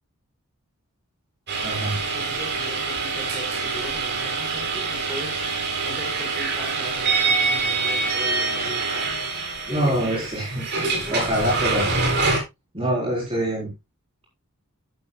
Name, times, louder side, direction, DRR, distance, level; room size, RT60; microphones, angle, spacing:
sound 1, 1.5-12.4, right 4 dB, 50° right, 3.6 m, -25 dB
voice 1, 1.6-2.0 9.7-10.6 11.1-11.9 12.7-13.7, equal, 25° right, -4 dB, 4.0 m, -24 dB
voice 2, 2.1-9.3 9.6-10.3 10.8-11.2, equal, 10° right, 1 dB, 4.8 m, -38 dB
11.5 x 11.0 x 2.3 m, 0.22 s
head